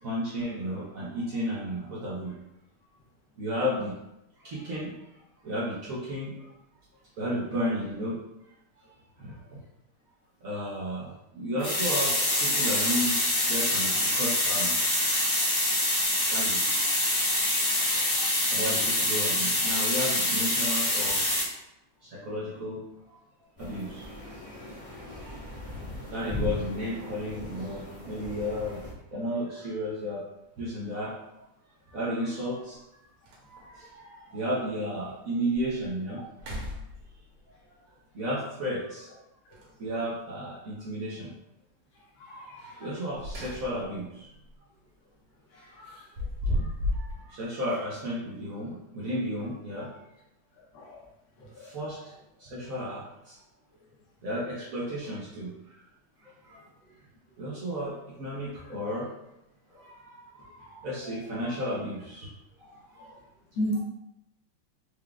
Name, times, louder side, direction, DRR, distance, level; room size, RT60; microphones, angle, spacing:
voice 1, 0.0-2.3 3.4-3.9 4.4-4.9 5.4-6.5 7.2-8.2 8.9-9.6 10.4-14.7 16.3-16.7 18.5-21.2 22.0-22.8 23.1-23.2 23.6-24.3 24.9-25.6 26.1-30.2 30.6-31.5 31.9-32.8 33.5-36.2 38.1-39.1 39.8-41.3 42.3-44.3 45.8-45.9 46.4-50.1 51.6-52.0 52.4-53.4 54.2-55.8 56.2-56.6 57.4-59.1 59.8-62.3 62.6-63.1, equal, 60° right, -6 dB, 0.9 m, -33 dB
sound 1, 11.6-21.4, left 1 dB, 50° left, 0.6 m, -25 dB
voice 2, 17.7-18.3 42.3-42.4 45.6-45.9 50.7-51.0 51.6-51.7 63.6-63.8, equal, 70° left, -4 dB, 1.7 m, -34 dB
sound 2, 23.6-28.9, left 1 dB, 20° left, 1.1 m, -39 dB
sound 3, 30.5-30.6 32.4-32.5 32.9-33.0 33.2-33.8 34.4-34.5 35.0-35.1 35.5-35.9 36.3-37.4 39.5-40.1 42.9-44.0 44.3-44.6 45.8-47.2, left 1 dB, 80° right, 1.8 m, -34 dB
4.7 x 3.3 x 2.4 m, 0.85 s
omnidirectional pair, 2.4 m